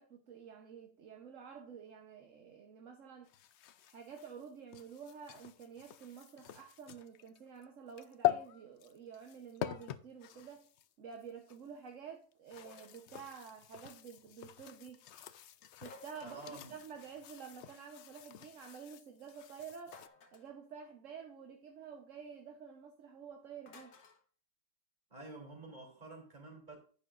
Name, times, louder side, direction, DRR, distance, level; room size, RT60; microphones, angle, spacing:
voice 1, 0.0-3.3 3.8-10.7 11.0-15.0 15.7-20.0 20.3-23.9, right 6 dB, 50° right, 1.3 m, -50 dB
sound 1, 3.3-11.7 12.3-20.1, left 12 dB, 70° left, 0.6 m, -43 dB
sound 2, 12.6-13.1 15.8-16.6 19.9-20.6 23.7-24.2, left 3 dB, 85° left, 2.1 m, -57 dB
voice 2, 16.2-16.8 25.1-26.8, right 2 dB, 25° right, 3.2 m, -50 dB
10.5 x 9.0 x 2.5 m
omnidirectional pair, 1.8 m